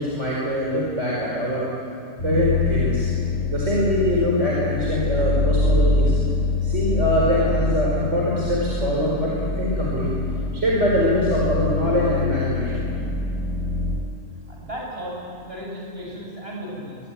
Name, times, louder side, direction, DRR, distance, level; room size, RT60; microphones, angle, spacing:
voice 1, 0.0-1.7 2.2-3.1 3.5-6.1 6.6-10.1 10.5-12.9, equal, 65° right, -5 dB, 5.2 m, -23 dB
sound 1, 2.2-13.9, left 3 dB, 70° left, 6.7 m, -24 dB
voice 2, 14.5-17.0, equal, 50° right, -3 dB, 8.2 m, -35 dB
24.5 x 21.5 x 9.4 m, 2.6 s
omnidirectional pair, 1.3 m